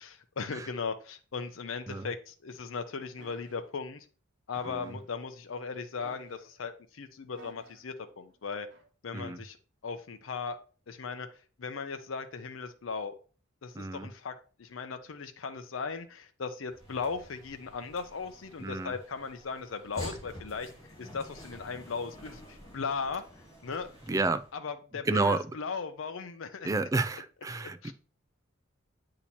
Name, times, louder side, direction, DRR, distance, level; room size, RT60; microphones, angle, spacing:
voice 1, 0.0-4.1 4.5-8.7 9.0-9.6 9.8-10.6 10.9-11.3 11.6-13.2 13.6-14.3 14.6-20.7 21.0-23.2 23.6-23.9 24.5-26.7 27.8-27.9, left 5 dB, 80° left, 0.6 m, -37 dB
sound 1, 3.2-3.6 4.5-5.0 6.0-6.6 7.3-7.9 8.7-8.9, right 1 dB, 65° right, 1.0 m, -55 dB
voice 2, 13.7-14.1 18.6-18.9 24.1-24.4 25.1-25.4 26.6-27.9, right 3 dB, 15° right, 0.3 m, -30 dB
sound 2, 16.7-24.5, equal, 20° left, 2.3 m, -48 dB
8.4 x 2.9 x 4.2 m
head